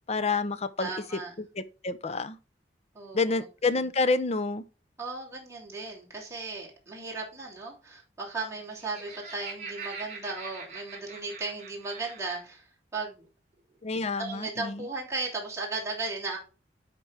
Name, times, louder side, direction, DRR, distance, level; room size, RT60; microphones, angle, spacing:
voice 1, 0.1-0.9 1.6-2.4 3.1-4.6 13.8-14.8, left 3 dB, 35° left, 0.6 m, -28 dB
voice 2, 0.8-1.3 2.9-3.4 5.0-13.3 14.2-16.4, right 3 dB, 15° right, 3.1 m, -36 dB
Laughter, 8.6-12.4, right 4 dB, 45° right, 4.6 m, -43 dB
11.0 x 4.6 x 3.4 m
head